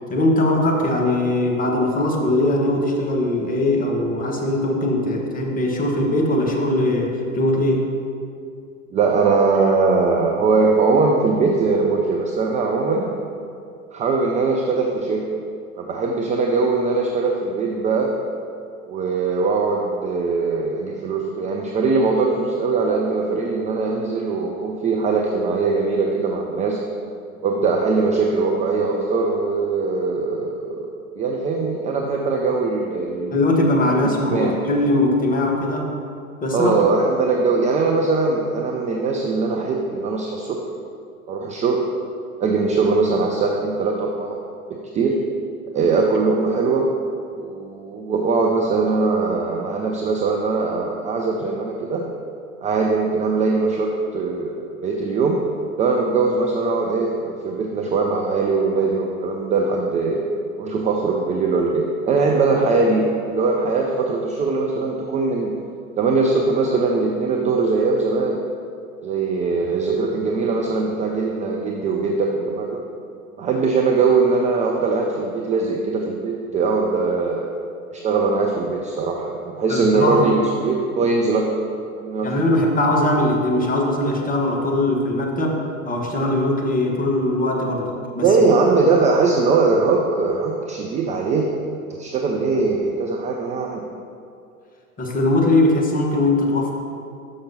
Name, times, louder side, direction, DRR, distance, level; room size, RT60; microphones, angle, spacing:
voice 1, 0.1-7.9 33.3-35.9 36.4-36.8 79.7-80.3 82.2-88.3 95.0-96.7, left 1 dB, 20° left, 0 dB, 1.2 m, -20 dB
voice 2, 8.9-13.1 13.9-15.2 15.8-18.1 18.9-26.8 27.4-30.9 31.2-33.4 34.3-34.5 36.5-40.6 41.3-41.8 42.4-44.4 44.7-45.2 45.7-46.9 47.3-52.0 52.6-55.4 55.8-60.2 60.6-65.5 66.0-68.4 69.0-72.8 73.4-77.4 77.9-81.5 82.0-82.6 88.2-91.5 91.9-93.8, right 4 dB, 15° right, 0 dB, 0.4 m, -21 dB
6.5 x 5.9 x 5.4 m, 2.5 s
figure-of-eight pair, 90°, 43 cm